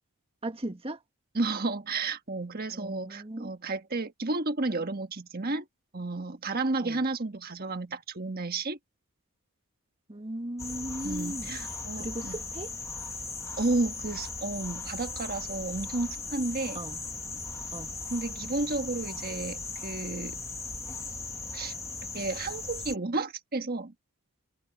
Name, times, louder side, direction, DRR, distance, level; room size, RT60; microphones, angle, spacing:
voice 1, 0.4-1.0 2.7-3.5 6.8-7.0 10.1-11.5 11.9-12.7 16.7-17.0 17.7-18.0, right 1 dB, 25° right, 1.6 m, -37 dB
voice 2, 1.3-5.7 5.9-8.8 11.0-12.4 13.6-16.8 18.1-20.4 21.5-21.7 22.1-23.9, right 3 dB, 45° right, 1.4 m, -32 dB
sound 1, 10.6-23.0, left 3 dB, 15° left, 1.2 m, -38 dB
head